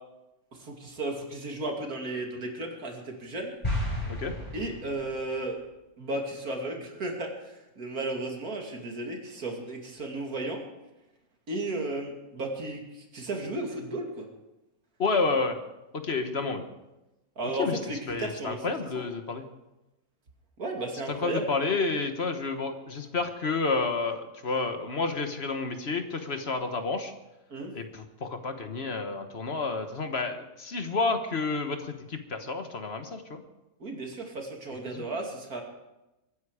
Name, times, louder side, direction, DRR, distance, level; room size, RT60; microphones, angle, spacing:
voice 1, 0.5-3.5 4.5-5.6 6.0-10.6 11.5-14.3 17.4-18.6 20.6-21.4 27.5-27.7 33.8-35.6, right 2 dB, 85° right, 1 dB, 3.0 m, -34 dB
sound 1, 3.6-5.3, left 1 dB, 25° left, 7.8 m, -32 dB
voice 2, 15.0-15.6 15.9-16.6 17.6-17.8 18.1-19.5 21.1-27.1 27.7-33.4 34.9-35.0, left 4 dB, 45° left, 7 dB, 1.5 m, -30 dB
23.0 x 9.8 x 5.0 m, 0.97 s
omnidirectional pair, 1.5 m